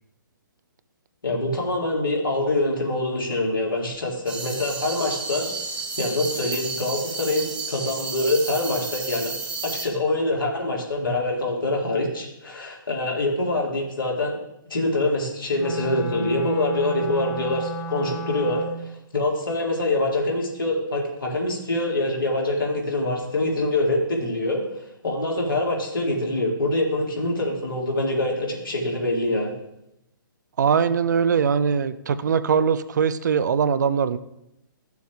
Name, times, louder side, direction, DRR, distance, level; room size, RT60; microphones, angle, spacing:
voice 1, 1.2-5.5 6.0-9.3 9.6-14.4 14.7-18.6 19.1-24.6 25.0-29.5, left 2 dB, 75° left, -1 dB, 2.0 m, -25 dB
sound 1, 4.3-9.8, right 4 dB, 10° right, 0.9 m, -32 dB
Wind instrument woodwind instrument, 15.5-18.9, right 2 dB, 20° left, 0.8 m, -32 dB
voice 2, 30.6-34.2, right 6 dB, 55° right, 13 dB, 0.4 m, -21 dB
12.5 x 6.9 x 2.3 m, 0.84 s
figure-of-eight pair, 130°, 11 cm